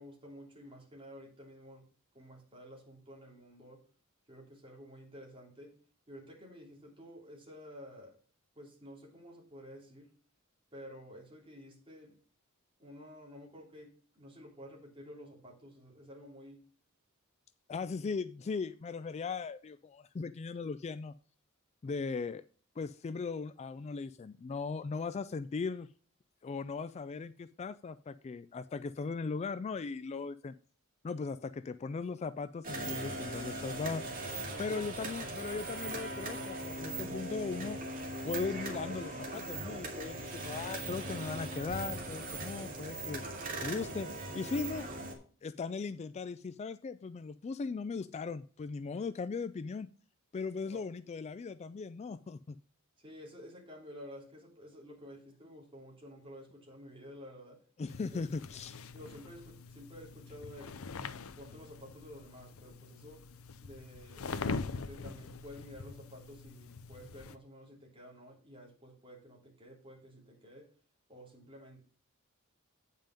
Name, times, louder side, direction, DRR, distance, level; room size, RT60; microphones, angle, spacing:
voice 1, 0.0-1.9 2.1-3.9 4.3-5.8 6.1-8.2 8.5-10.1 10.7-12.2 12.8-16.6 34.5-35.1 50.7-50.8 53.0-57.6 58.1-58.2 58.9-61.0 61.4-63.3 63.6-64.3 64.8-70.7 71.1-71.9, equal, 25° right, -2 dB, 3.2 m, -51 dB
voice 2, 17.7-21.1 21.8-22.4 22.8-25.9 26.4-30.5 31.0-34.0 34.6-37.8 38.2-43.2 43.6-44.1 44.3-44.9 45.4-49.9 50.3-52.6 57.8-58.8, left 4 dB, 30° left, 14 dB, 0.3 m, -38 dB
sound 1, 32.6-45.1, right 2 dB, 40° right, 2.1 m, -40 dB
sound 2, 57.9-67.4, left 4 dB, 80° left, 0.6 m, -43 dB
8.9 x 5.6 x 5.1 m, 0.41 s
head